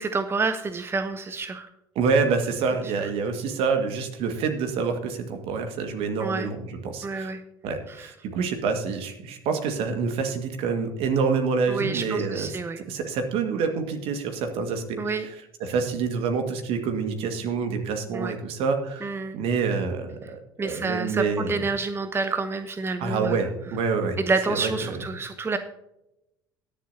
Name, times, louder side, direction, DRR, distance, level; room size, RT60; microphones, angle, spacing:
voice 1, 0.0-1.7 6.2-6.5 7.0-7.4 7.9-8.1 11.7-12.8 15.0-15.3 18.1-18.3 19.0-19.4 20.6-23.4 24.2-25.6, right 4 dB, 20° right, 10 dB, 0.8 m, -28 dB
voice 2, 2.0-7.3 7.6-12.5 12.9-15.3 15.6-21.6 23.0-24.2 24.5-25.0, right 5 dB, 55° right, 6 dB, 1.8 m, -27 dB
21.5 x 7.4 x 2.8 m, 0.91 s
figure-of-eight pair, 60°, 12 cm